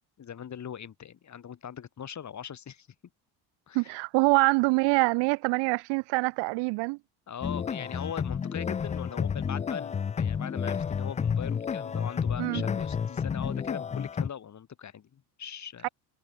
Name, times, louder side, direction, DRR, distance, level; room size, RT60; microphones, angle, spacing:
voice 1, 0.2-2.9 3.7-4.0 7.3-15.9, left 8 dB, 40° left, 4.6 m, -41 dB
voice 2, 3.7-7.0 12.4-12.6 15.8-15.9, right 28 dB, 75° right, 0.9 m, -25 dB
sound 1, 7.4-14.3, left 7 dB, 15° left, 0.4 m, -31 dB
supercardioid pair, 90°, 43 cm